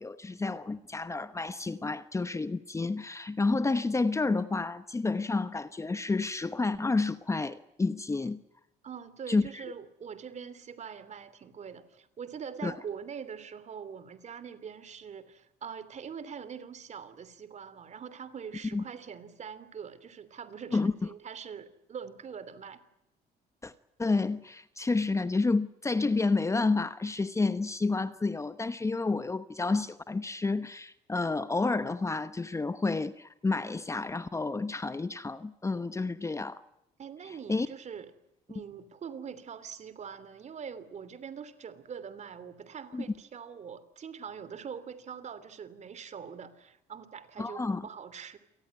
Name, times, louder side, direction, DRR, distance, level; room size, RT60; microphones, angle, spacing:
voice 1, 0.0-8.4 9.3-9.6 12.6-12.7 18.7-18.8 20.7-20.9 23.6-23.7 24.0-36.6 37.5-37.7 42.9-43.0 47.4-47.9, left 3 dB, 15° left, 1.0 m, -30 dB
voice 2, 8.8-22.8 37.0-38.1 38.5-48.4, right 7 dB, 45° right, 3.0 m, -43 dB
28.0 x 19.0 x 9.5 m
cardioid pair, 110°, 17 cm